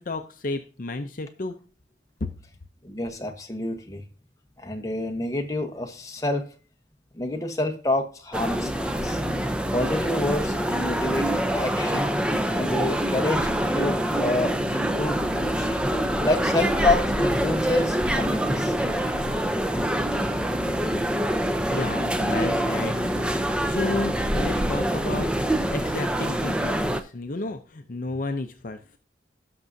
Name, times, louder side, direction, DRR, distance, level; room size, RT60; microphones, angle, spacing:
voice 1, 0.0-1.6 2.2-2.3 21.6-23.0 23.6-29.0, left 2 dB, 45° left, 6 dB, 0.6 m, -32 dB
voice 2, 2.8-4.0 4.6-6.4 7.1-9.2 9.7-11.3 11.5-12.1 12.5-13.5 13.7-15.7 16.2-18.7, left 2 dB, 20° left, 4 dB, 1.0 m, -28 dB
sound 1, 8.3-27.0, right 1 dB, 5° right, 0.5 m, -25 dB
17.5 x 6.2 x 2.7 m, 0.39 s
head